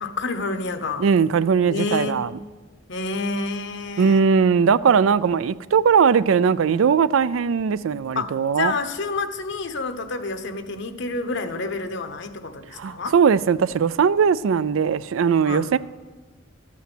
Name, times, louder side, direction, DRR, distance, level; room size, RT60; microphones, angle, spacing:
voice 1, 0.0-1.1 1.7-2.3 2.9-4.2 8.2-13.1 15.4-15.7, left 3 dB, 65° left, 1.0 m, -29 dB
voice 2, 1.0-2.3 4.0-8.7 12.8-15.8, right 6 dB, 80° right, 0.4 m, -19 dB
12.5 x 8.4 x 6.1 m
head